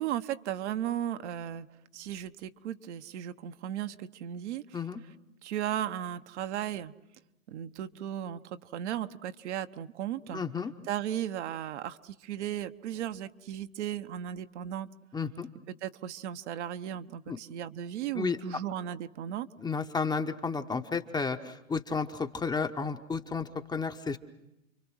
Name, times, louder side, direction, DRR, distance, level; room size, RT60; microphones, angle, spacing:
voice 1, 0.0-1.7 1.9-4.6 5.4-6.9 7.5-10.4 10.9-14.9 15.8-19.5, right 11 dB, 60° right, 9 dB, 1.1 m, -36 dB
voice 2, 10.3-10.7 15.1-15.5 17.3-17.4 18.1-18.4 19.6-24.2, left 5 dB, 10° left, 7 dB, 0.9 m, -32 dB
30.0 x 23.5 x 6.3 m, 0.89 s
hypercardioid pair, 115°, 40 cm